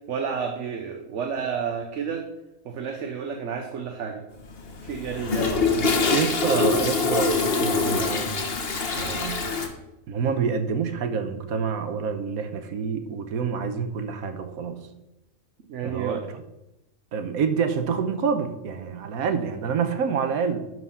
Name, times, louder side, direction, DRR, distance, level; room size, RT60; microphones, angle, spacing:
voice 1, 0.1-2.3 2.6-4.2 4.8-6.1 15.7-16.3, right 6 dB, 60° right, 4 dB, 1.2 m, -31 dB
Toilet flush, 4.4-9.7, left 4 dB, 45° left, 1.3 m, -24 dB
voice 2, 6.1-8.3 9.0-9.4 10.1-14.8 15.8-16.2 17.1-20.7, right 6 dB, 80° right, 9 dB, 1.4 m, -27 dB
11.5 x 4.7 x 5.6 m, 0.94 s
omnidirectional pair, 1.5 m